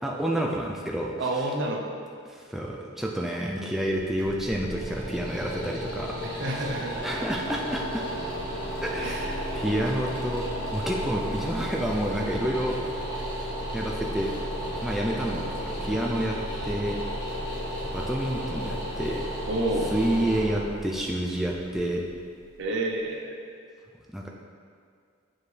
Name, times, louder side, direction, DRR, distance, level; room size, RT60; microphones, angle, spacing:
voice 1, 0.0-1.5 2.3-6.2 6.5-8.1 8.8-12.8 13.7-14.3 14.8-16.4 16.6-17.0 17.9-19.3 19.9-22.0 24.1-24.3, right 1 dB, ahead, -2 dB, 0.3 m, -29 dB
voice 2, 1.2-2.0 6.2-7.1 9.0-9.3 19.5-19.9 22.6-23.4, right 1 dB, 60° right, 1 dB, 0.7 m, -29 dB
sound 1, 3.8-22.7, equal, 25° left, 1.5 m, -33 dB
7.3 x 4.6 x 3.2 m, 2.2 s
head